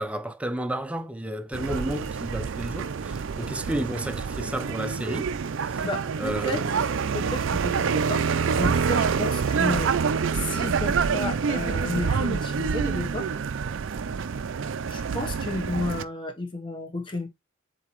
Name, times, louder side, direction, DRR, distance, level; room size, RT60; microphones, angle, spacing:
voice 1, 0.0-5.3 5.6-5.8 6.2-6.7, right 1 dB, 5° right, 0.5 m, -32 dB
sound 1, 1.5-16.0, right 5 dB, 60° right, 0.4 m, -27 dB
voice 2, 5.8-9.9 10.3-13.3 14.9-17.3, left 2 dB, 20° left, 1.0 m, -32 dB
7.7 x 4.1 x 3.0 m
head